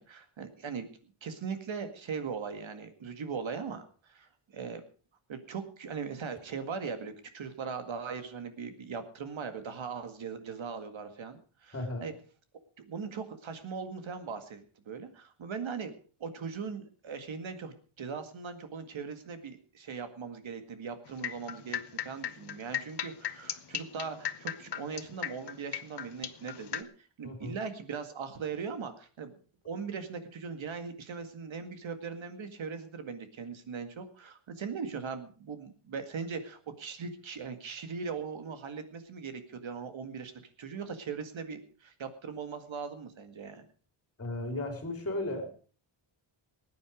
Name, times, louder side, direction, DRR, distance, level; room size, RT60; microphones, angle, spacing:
voice 1, 0.0-4.8 5.3-12.1 12.9-15.9 16.2-29.4 29.7-40.3 40.6-43.7, right 5 dB, 65° right, 9 dB, 2.0 m, -40 dB
voice 2, 11.7-12.1 27.2-27.6 44.2-45.5, left 1 dB, 30° left, 4 dB, 3.9 m, -35 dB
sound 1, 21.1-26.8, left 10 dB, 55° left, 1.0 m, -36 dB
20.0 x 9.5 x 5.1 m, 0.40 s
wide cardioid pair, 175°, 50 cm